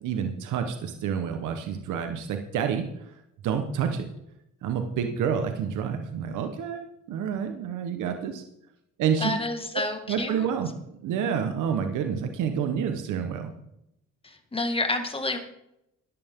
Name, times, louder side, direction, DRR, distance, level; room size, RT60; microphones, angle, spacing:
voice 1, 0.0-2.9 3.4-4.1 4.6-8.4 9.0-9.3 10.1-10.7 11.0-13.5, right 7 dB, 85° right, 6 dB, 1.2 m, -28 dB
voice 2, 9.2-10.5 14.2-15.4, left 2 dB, 20° left, 6 dB, 1.9 m, -29 dB
14.0 x 11.0 x 3.7 m, 0.81 s
cardioid pair, 90°, 30 cm